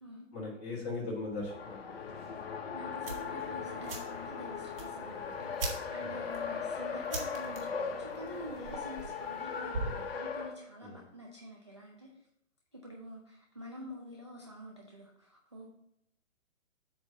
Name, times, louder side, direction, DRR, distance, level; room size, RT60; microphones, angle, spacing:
voice 1, 0.3-2.1 6.0-6.1 10.8-11.0, left 3 dB, 15° left, -4 dB, 1.6 m, -39 dB
Race car auto racing, 1.3-10.5, left 6 dB, 50° left, 0.8 m, -39 dB
voice 2, 2.7-12.1 12.7-15.7, equal, 25° right, -2 dB, 0.3 m, -47 dB
sound 1, 3.0-10.1, right 2 dB, 45° right, 1.6 m, -43 dB
7.9 x 3.0 x 5.5 m, 0.74 s
hypercardioid pair, 160°, 38 cm